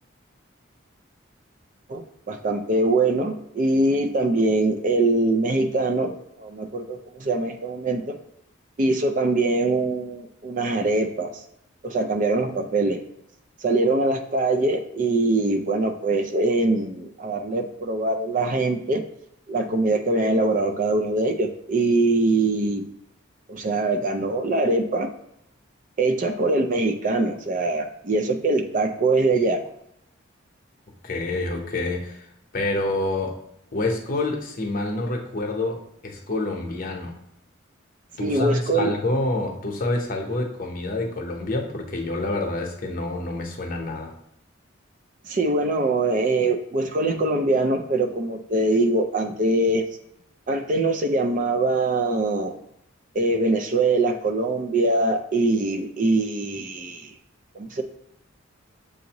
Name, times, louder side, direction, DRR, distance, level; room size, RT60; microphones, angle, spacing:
voice 1, 1.9-6.1 6.4-8.1 8.8-11.4 11.8-13.0 13.6-19.0 19.5-22.9 23.5-25.1 26.0-29.6 38.2-38.9 45.3-49.9 50.5-52.5 53.1-57.1 57.6-57.8, right 2 dB, 40° right, 6 dB, 0.4 m, -23 dB
voice 2, 31.0-32.3 32.5-33.4 33.7-37.1 38.2-44.1, left 2 dB, 45° left, 1 dB, 0.8 m, -27 dB
6.9 x 2.6 x 2.9 m, 0.77 s
head